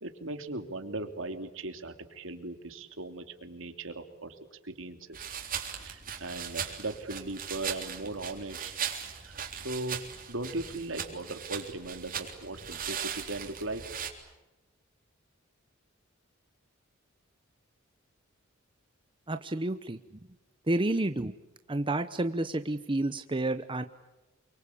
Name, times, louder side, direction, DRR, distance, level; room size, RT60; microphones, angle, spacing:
voice 1, 0.0-5.3 5.8-8.7 9.2-10.0 10.3-13.8, right 2 dB, 70° right, 6 dB, 2.9 m, -38 dB
sound 1, 5.1-14.1, right 8 dB, 45° right, 3.7 m, -38 dB
voice 2, 19.3-20.0 20.7-21.3 21.7-23.8, right 2 dB, 25° right, 10 dB, 0.8 m, -30 dB
28.5 x 24.0 x 8.6 m, 1.1 s
head